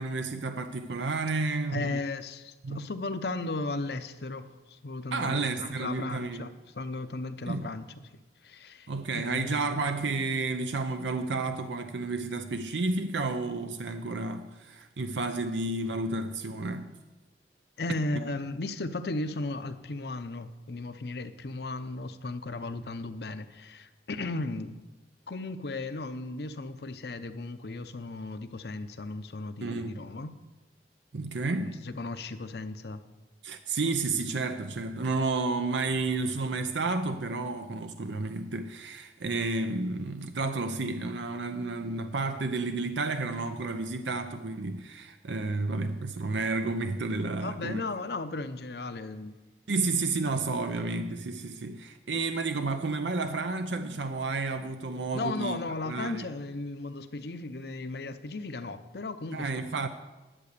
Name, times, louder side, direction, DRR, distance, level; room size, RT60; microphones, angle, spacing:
voice 1, 0.0-2.0 2.6-2.9 5.1-6.5 7.5-7.7 8.9-17.0 29.6-30.0 31.1-31.8 33.4-47.8 49.7-55.6 55.8-56.3 59.3-59.9, right 3 dB, 90° right, 0.6 m, -31 dB
voice 2, 1.7-7.9 8.4-8.9 9.1-9.8 17.8-24.8 25.3-30.3 31.6-33.0 47.4-49.3 55.1-59.5, left 2 dB, 65° left, 0.7 m, -36 dB
11.0 x 8.1 x 6.7 m
head